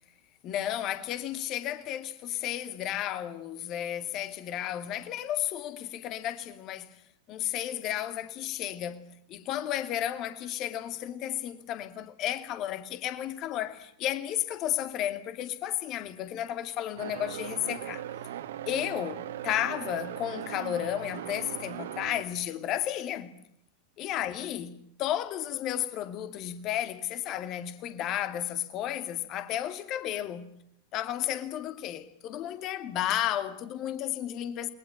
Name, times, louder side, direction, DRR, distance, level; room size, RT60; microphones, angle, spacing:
voice 1, 0.4-7.0 7.3-18.0 18.7-23.4 24.0-30.5 30.9-34.7, left 12 dB, 35° left, 2.5 m, -33 dB
sound 1, 17.0-22.2, right 11 dB, 60° right, 2.1 m, -39 dB
29.0 x 22.5 x 8.8 m
figure-of-eight pair, 90°, 0 cm